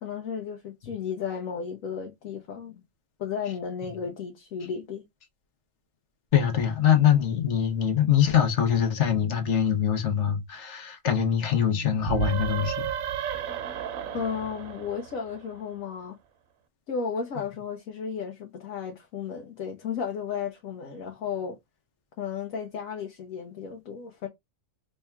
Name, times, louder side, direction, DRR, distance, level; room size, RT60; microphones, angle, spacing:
voice 1, 0.0-2.8 3.2-5.1 14.1-16.1 16.9-21.6 22.2-24.3, left 6 dB, 85° left, 1.3 m, -34 dB
voice 2, 6.3-12.9, left 9 dB, 60° left, 1.2 m, -23 dB
sound 1, 12.0-15.6, right 9 dB, 90° right, 1.1 m, -33 dB
4.2 x 3.4 x 2.2 m
omnidirectional pair, 1.4 m